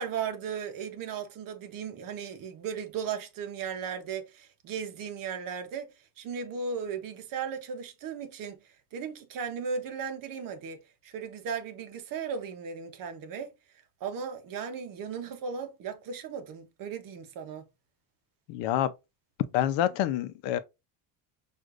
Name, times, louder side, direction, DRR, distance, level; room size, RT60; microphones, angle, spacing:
voice 1, 0.0-5.9 6.2-13.5 14.0-17.6, right 6 dB, 50° right, 0.8 m, -36 dB
voice 2, 18.5-18.9 19.5-20.6, left 12 dB, 85° left, 0.7 m, -27 dB
6.3 x 2.5 x 2.5 m
cardioid pair, 170°, 44 cm